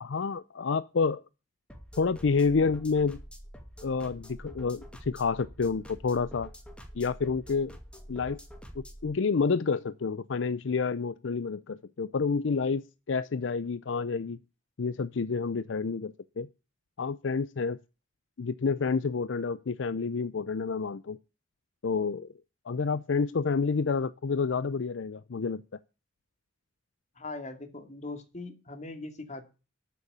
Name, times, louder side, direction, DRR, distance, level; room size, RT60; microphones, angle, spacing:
voice 1, 0.0-1.2 2.0-3.2 3.8-6.5 6.9-7.7 8.1-8.4 8.8-14.4 14.8-16.5 17.0-17.8 18.4-21.2 21.8-22.3 22.7-25.6, left 5 dB, 70° left, 0.5 m, -29 dB
sound 1, 1.7-9.1, equal, 5° left, 2.3 m, -47 dB
voice 2, 27.2-29.4, left 2 dB, 40° left, 2.5 m, -40 dB
13.0 x 7.0 x 6.8 m
head